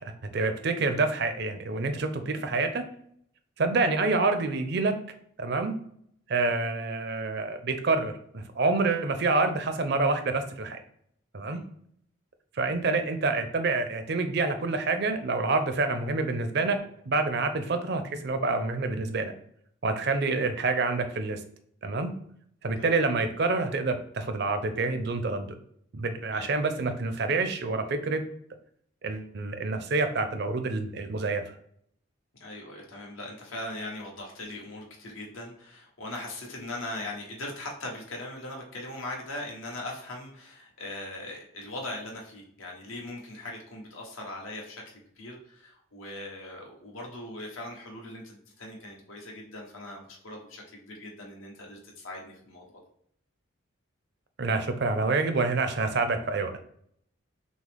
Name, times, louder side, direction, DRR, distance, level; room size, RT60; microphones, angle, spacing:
voice 1, 0.0-2.9 3.6-5.0 5.4-5.7 6.3-10.8 11.3-11.6 12.6-16.8 17.1-19.3 19.8-21.4 21.8-22.1 22.6-25.6 25.9-28.2 29.0-31.4 54.4-56.6, right 3 dB, 55° right, 8 dB, 0.5 m, -27 dB
voice 2, 32.4-52.8, left 1 dB, 80° left, -1 dB, 1.2 m, -40 dB
6.1 x 2.0 x 3.5 m, 0.68 s
head